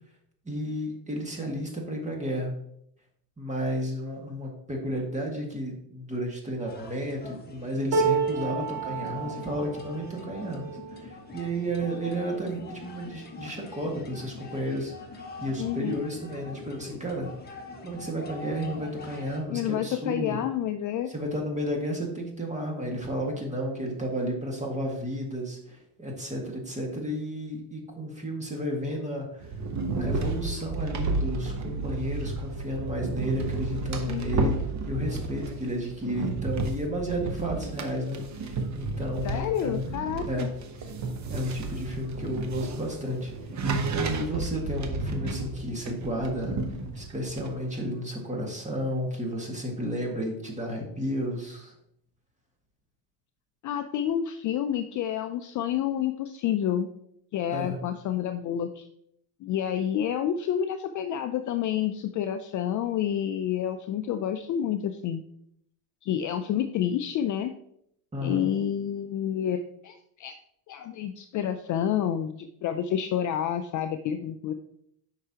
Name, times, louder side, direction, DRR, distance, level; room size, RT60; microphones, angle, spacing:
voice 1, 0.5-2.5 3.4-17.3 17.8-20.4 21.1-29.5 30.0-34.5 34.8-39.8 40.3-40.5 41.3-46.6 47.0-51.7 57.5-57.8 68.1-68.5, equal, 15° right, 1 dB, 1.8 m, -32 dB
sound 1, 6.7-19.4, left 3 dB, 20° left, 1.2 m, -44 dB
sound 2, 7.9-14.1 14.6-14.8 15.1-15.9 16.9-17.0, right 5 dB, 80° right, 1.8 m, -32 dB
voice 2, 15.6-16.0 19.5-21.1 34.1-34.6 39.2-40.5 53.6-56.9 57.3-58.9 59.4-65.2 66.0-67.5 68.2-70.3 70.7-74.5, left 10 dB, 40° left, 7 dB, 0.4 m, -29 dB
sound 3, 29.4-47.5, right 3 dB, 35° right, 0.9 m, -32 dB
8.4 x 5.7 x 2.8 m, 0.72 s
cardioid pair, 130°, 49 cm